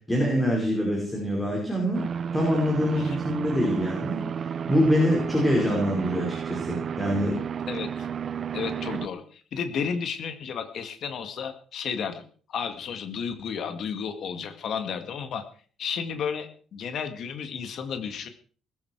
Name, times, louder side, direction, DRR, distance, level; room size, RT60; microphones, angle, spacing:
voice 1, 0.0-2.0 2.3-7.4, equal, 10° left, -1 dB, 5.4 m, -25 dB
sound 1, 1.9-9.1, right 7 dB, 35° right, 0.6 m, -32 dB
voice 2, 7.7-8.1 8.5-12.2 12.5-15.4 15.8-18.3, left 6 dB, 45° left, 8 dB, 2.0 m, -32 dB
20.5 x 12.5 x 4.8 m, 0.43 s
cardioid pair, 175°, 0 cm